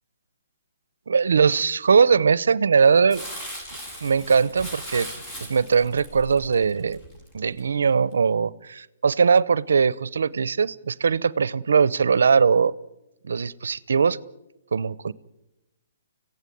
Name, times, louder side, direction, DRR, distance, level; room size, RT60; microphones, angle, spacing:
voice 1, 1.1-3.2 4.0-5.1 5.5-7.0 7.3-12.7 13.2-14.2 14.7-15.1, right 5 dB, 80° right, 21 dB, 0.8 m, -20 dB
Crumpling crinkling, 3.1-7.6 8.1-8.2, equal, 20° left, 7.5 m, -38 dB
25.5 x 16.0 x 9.3 m, 0.97 s
hypercardioid pair, 155°, 0 cm